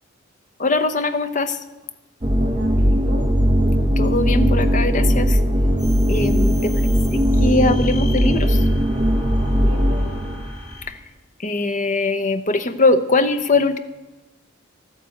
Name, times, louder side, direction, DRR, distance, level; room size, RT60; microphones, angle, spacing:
voice 1, 0.6-1.6 4.0-5.4 6.1-6.6 7.1-8.6 10.9-11.0 11.4-13.8, left 3 dB, 40° left, 9 dB, 0.8 m, -21 dB
sound 1, 2.2-10.5, equal, 20° right, 1.0 m, -18 dB
voice 2, 2.4-3.3 6.5-7.0 9.6-10.4, left 1 dB, 75° right, 0 dB, 2.7 m, -38 dB
sound 2, 5.8-10.8, left 1 dB, 10° left, 6.0 m, -38 dB
12.5 x 9.6 x 7.8 m, 1.1 s
head